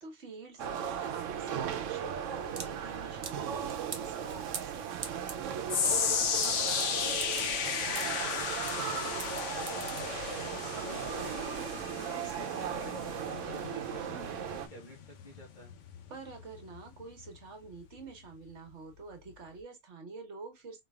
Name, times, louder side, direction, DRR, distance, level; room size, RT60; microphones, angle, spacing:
voice 1, 0.0-5.6 11.9-12.5 16.1-20.8, right 4 dB, 65° right, 1.4 m, -47 dB
sound 1, 0.6-10.6, right 5 dB, 45° right, 0.4 m, -45 dB
sound 2, 0.6-14.7, right 8 dB, 90° right, 1.0 m, -37 dB
sound 3, 5.7-18.0 18.3-18.7 19.3-19.4, left 7 dB, 75° left, 1.1 m, -35 dB
voice 2, 6.9-12.1 12.7-15.7, equal, 40° left, 1.7 m, -51 dB
4.1 x 3.3 x 2.3 m
omnidirectional pair, 1.3 m